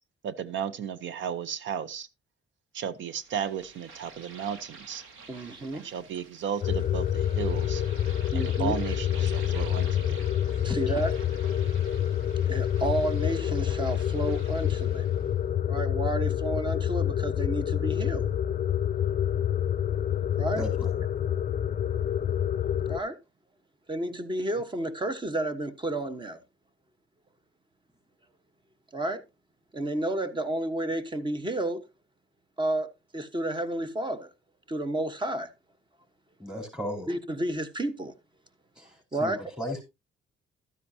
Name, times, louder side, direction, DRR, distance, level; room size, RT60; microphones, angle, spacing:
voice 1, 0.2-2.1 2.7-5.0 5.7-7.8 8.3-10.2, right 8 dB, 70° right, 0.8 m, -34 dB
sound 1, 3.1-15.3, right 4 dB, 85° right, 1.9 m, -49 dB
voice 2, 5.3-5.8 8.3-8.8 10.6-11.1 12.5-15.1 15.7-18.3 20.4-20.6 22.9-23.2 23.9-26.4 28.9-29.2 29.7-31.9 32.6-34.3 34.7-35.5 37.1-38.1 39.1-39.4, right 1 dB, 25° right, 1.2 m, -31 dB
sound 2, 6.6-23.0, left 10 dB, 40° left, 0.5 m, -27 dB
voice 3, 10.5-10.8 20.5-21.0 36.4-37.1 38.8-39.8, left 1 dB, 5° right, 4.3 m, -36 dB
12.5 x 9.8 x 2.8 m
cardioid pair, 90°, 20 cm